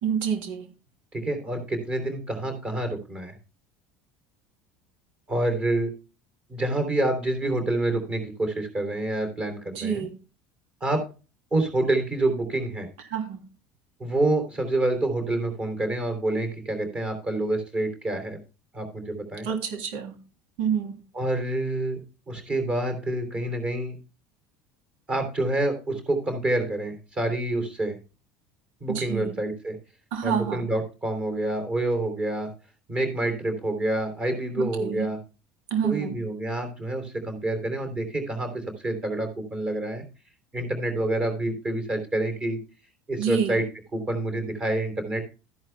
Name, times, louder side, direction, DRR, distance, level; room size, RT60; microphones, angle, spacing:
voice 1, 0.0-0.7 9.7-10.1 13.1-13.4 19.4-20.2 20.6-21.0 28.9-29.3 30.1-30.7 34.6-35.1 35.7-36.2 43.2-43.6, right 7 dB, 80° right, 4 dB, 3.3 m, -28 dB
voice 2, 1.1-3.3 5.3-5.9 6.5-10.0 10.8-11.0 11.5-12.9 14.0-18.4 18.7-19.5 21.1-24.0 25.1-28.0 28.8-29.8 30.2-32.5 32.9-35.2 35.8-40.0 40.5-42.6 43.1-43.6 43.9-45.2, right 2 dB, 20° right, 6 dB, 3.3 m, -27 dB
13.5 x 11.0 x 2.2 m, 0.32 s
cardioid pair, 175°, 6 cm